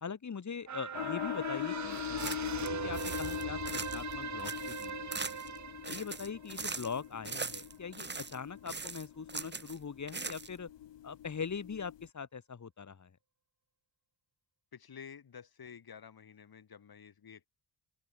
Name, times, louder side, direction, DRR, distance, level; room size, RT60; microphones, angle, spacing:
voice 1, 0.0-2.3 2.8-5.4 5.8-10.7 11.0-13.1, left 6 dB, 40° left, 3.3 m, -42 dB
sound 1, 0.7-7.3 7.7-7.8, right 7 dB, 40° right, 1.1 m, -41 dB
sound 2, 0.9-12.1, left 11 dB, 80° left, 1.3 m, -42 dB
sound 3, 2.0-2.7 2.9-4.1 4.4-5.6 5.8-7.0 7.2-8.4 8.7-9.8 10.1-10.7, right 4 dB, 25° right, 1.6 m, -41 dB
voice 2, 14.7-17.5, left 7 dB, 55° left, 7.2 m, -51 dB
open air
wide cardioid pair, 140°, 43 cm